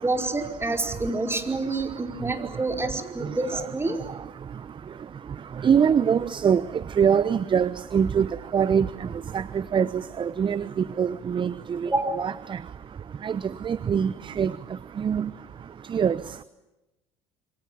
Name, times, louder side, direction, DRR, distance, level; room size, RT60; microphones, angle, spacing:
voice 1, 0.0-4.0 11.8-12.2, right 2 dB, 15° right, 4 dB, 5.0 m, -28 dB
voice 2, 5.6-6.6 7.0-8.3 8.5-8.9 9.7-9.9 10.2-10.6 11.0-11.5 12.2-12.3 13.2-13.3 13.7-14.1 14.4-14.5 15.0-15.3 15.9-16.2, right 7 dB, 30° right, 17 dB, 0.9 m, -22 dB
27.0 x 23.5 x 8.9 m, 0.99 s
hypercardioid pair, 60°, 15 cm